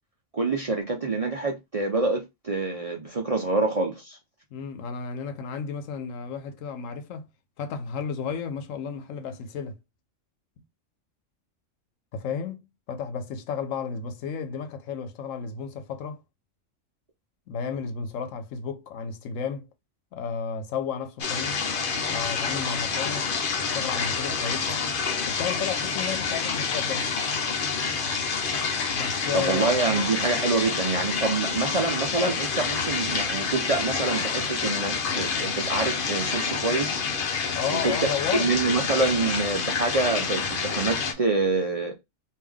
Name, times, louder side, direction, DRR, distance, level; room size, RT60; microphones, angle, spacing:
voice 1, 0.3-4.2 29.3-37.1 37.7-37.9 38.4-42.0, right 3 dB, 45° right, 0.5 m, -26 dB
voice 2, 4.5-7.3 7.6-9.8 12.1-16.2 17.5-19.6 20.1-21.7 22.1-23.3 23.6-24.9 25.2-27.1 28.9-29.8 37.6-38.5, left 6 dB, 85° left, 1.0 m, -33 dB
sound 1, 21.2-41.1, left 5 dB, 50° left, 0.7 m, -28 dB
3.5 x 2.6 x 3.4 m
omnidirectional pair, 1.3 m